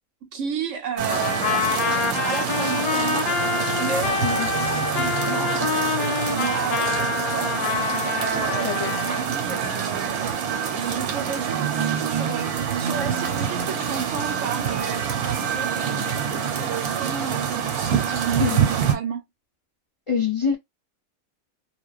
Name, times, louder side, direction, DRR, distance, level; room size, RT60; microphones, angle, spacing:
voice 1, 0.3-3.4 3.8-7.6 8.2-10.4 10.7-15.9 16.3-19.2, right 6 dB, 65° right, 0.9 m, -32 dB
sound 1, 1.0-18.9, right 8 dB, 85° right, 1.2 m, -26 dB
Trumpet, 1.1-9.3, left 6 dB, 80° left, 1.1 m, -26 dB
voice 2, 20.1-20.6, left 6 dB, 55° left, 0.3 m, -24 dB
2.5 x 2.1 x 2.3 m
omnidirectional pair, 1.5 m